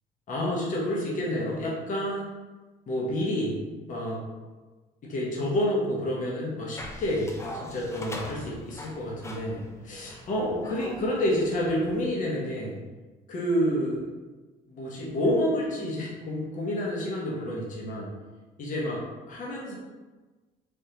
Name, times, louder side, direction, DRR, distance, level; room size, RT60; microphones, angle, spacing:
voice 1, 0.3-2.3 2.9-3.6 3.9-4.2 5.0-12.8 13.3-14.0 14.7-18.1 18.6-19.0 19.3-19.7, equal, 50° left, -4 dB, 0.9 m, -29 dB
sound 1, 6.8-12.1, left 1 dB, 15° left, 0.4 m, -42 dB
3.5 x 2.7 x 2.8 m, 1.3 s
cardioid pair, 110°, 17 cm